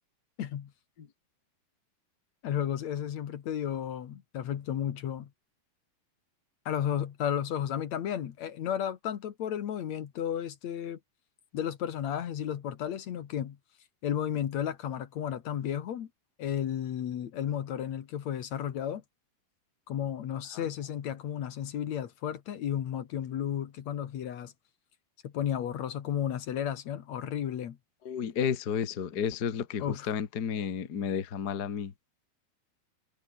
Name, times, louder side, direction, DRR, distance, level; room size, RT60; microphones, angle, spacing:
voice 1, 0.4-0.7 2.4-5.3 6.7-11.0 11.5-13.6 14.0-16.1 16.4-19.0 19.9-24.5 25.2-27.8 29.8-30.1, left 9 dB, 55° left, 2.2 m, -33 dB
voice 2, 28.0-31.9, left 7 dB, 85° left, 0.8 m, -32 dB
omnidirectional pair, 4.8 m